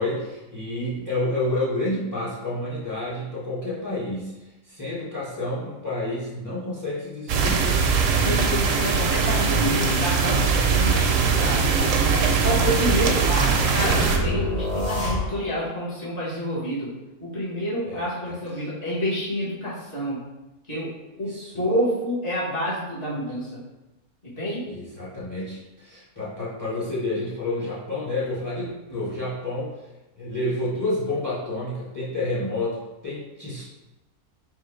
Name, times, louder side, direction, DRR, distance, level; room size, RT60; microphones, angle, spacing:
voice 1, 0.0-4.3 4.6-7.8 17.8-18.7 21.2-21.5 24.7-29.7 30.2-33.6, left 2 dB, 15° left, -7 dB, 0.8 m, -29 dB
sound 1, 7.3-14.2, right 5 dB, 70° right, 0.9 m, -21 dB
voice 2, 8.2-11.7 12.4-16.9 17.2-20.2 20.7-20.9 21.2-23.6 24.2-24.6, equal, 40° left, -7 dB, 1.6 m, -28 dB
sound 2, 13.8-15.7, left 1 dB, 60° left, 1.1 m, -27 dB
3.7 x 2.8 x 4.4 m, 1.0 s
omnidirectional pair, 1.5 m